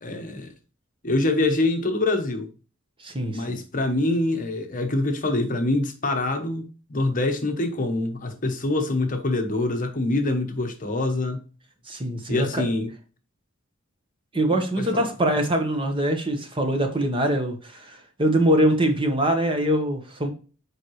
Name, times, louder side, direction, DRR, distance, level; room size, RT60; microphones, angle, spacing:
voice 1, 0.0-0.5 1.0-2.5 3.3-11.4 12.3-12.9 14.5-15.1, left 2 dB, 40° left, 1.0 m, -25 dB
voice 2, 3.0-3.6 11.9-12.6 14.3-20.3, right 1 dB, 25° right, 1.1 m, -23 dB
7.3 x 4.8 x 3.1 m
head